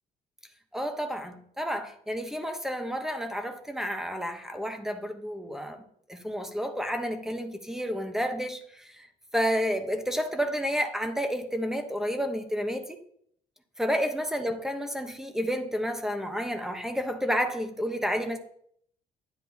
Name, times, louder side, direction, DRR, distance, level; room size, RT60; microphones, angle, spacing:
voice 1, 0.7-5.8 6.1-9.1 9.3-13.0 13.8-18.4, equal, 5° right, 1.1 m, -30 dB
10.0 x 9.7 x 2.9 m
cardioid pair, 110°, 17 cm